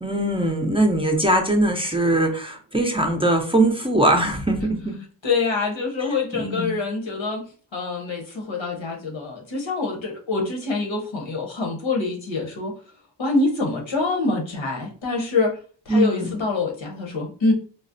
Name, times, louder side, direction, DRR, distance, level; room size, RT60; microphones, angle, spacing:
voice 1, 0.0-4.9 6.3-6.7 15.9-16.3, right 1 dB, 15° right, 1 dB, 0.4 m, -21 dB
voice 2, 5.2-7.4 7.7-12.7 13.2-15.6 15.8-17.5, left 3 dB, 85° left, 1 dB, 1.0 m, -25 dB
4.0 x 2.0 x 2.5 m, 0.41 s
wide cardioid pair, 80°, 45 cm